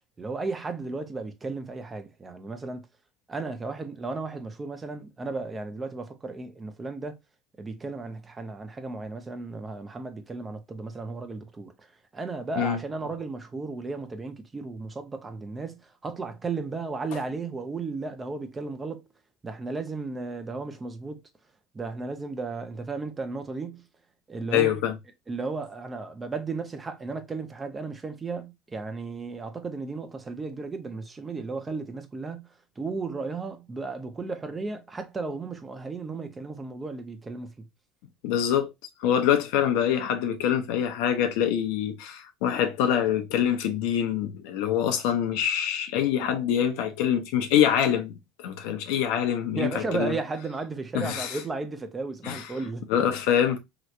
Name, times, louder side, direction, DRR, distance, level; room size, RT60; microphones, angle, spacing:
voice 1, 0.2-2.9 3.3-7.2 7.6-11.7 12.1-19.0 19.4-21.2 21.7-23.8 24.3-24.7 25.3-32.4 32.8-37.7 49.6-53.0, right 3 dB, 25° right, 0.7 m, -34 dB
voice 2, 24.5-24.9 38.2-38.7 39.0-50.2 50.9-51.4 52.2-52.4 52.9-53.6, left 9 dB, 75° left, 0.7 m, -25 dB
3.2 x 3.0 x 2.5 m
supercardioid pair, 90°, 0 cm